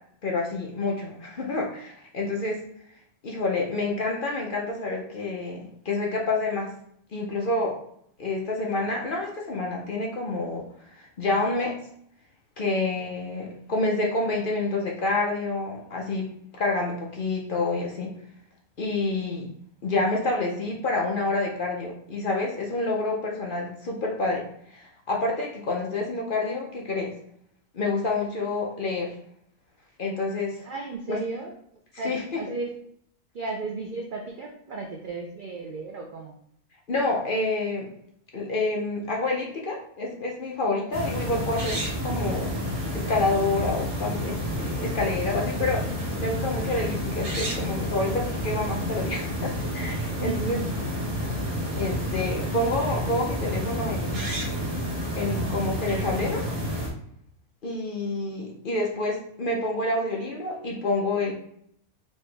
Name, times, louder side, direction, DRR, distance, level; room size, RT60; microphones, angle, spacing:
voice 1, 0.2-2.6 3.2-6.7 7.1-7.8 8.2-10.6 10.9-11.8 12.6-16.3 16.6-18.1 18.8-19.5 19.8-24.4 24.7-27.1 27.7-29.1 30.0-30.7 31.1-31.2 31.9-32.2 36.9-37.9 38.3-42.5 42.9-50.6 51.8-54.2 55.1-56.5 57.6-61.3, left 2 dB, 50° left, 0 dB, 0.7 m, -28 dB
voice 2, 30.7-31.5 32.0-32.7 33.3-36.4 50.2-50.6, right 3 dB, 85° right, 2 dB, 0.4 m, -34 dB
sound 1, 40.9-56.9, equal, 65° right, 1.7 m, -30 dB
4.4 x 2.9 x 3.3 m, 0.68 s
omnidirectional pair, 1.5 m